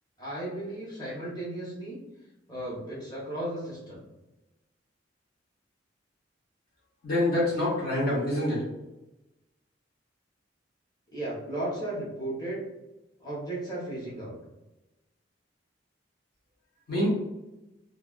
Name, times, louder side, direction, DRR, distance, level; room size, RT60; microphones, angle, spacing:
voice 1, 0.2-2.0 2.5-4.0 11.1-12.6 13.2-14.3, right 1 dB, 20° left, -8 dB, 1.0 m, -35 dB
voice 2, 7.0-8.7 16.9-17.1, left 1 dB, 55° left, -6 dB, 1.1 m, -26 dB
3.3 x 2.5 x 2.4 m, 0.99 s
head